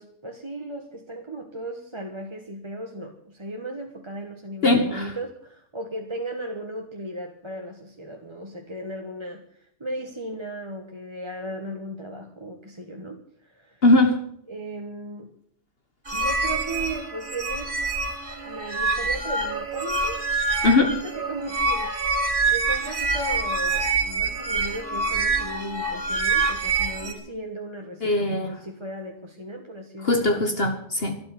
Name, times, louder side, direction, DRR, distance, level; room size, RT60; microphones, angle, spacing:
voice 1, 0.0-9.4 9.8-13.8 14.5-15.3 16.1-17.8 18.4-20.2 20.7-22.0 22.5-30.4, right 1 dB, 25° right, 2 dB, 1.5 m, -36 dB
voice 2, 4.6-5.1 13.8-14.2 20.6-20.9 28.0-28.6 30.0-31.2, left 2 dB, 50° left, 6 dB, 1.8 m, -20 dB
sound 1, 16.1-27.1, right 3 dB, 45° right, 2.5 m, -26 dB
12.5 x 12.5 x 9.1 m, 0.63 s
omnidirectional pair, 1.3 m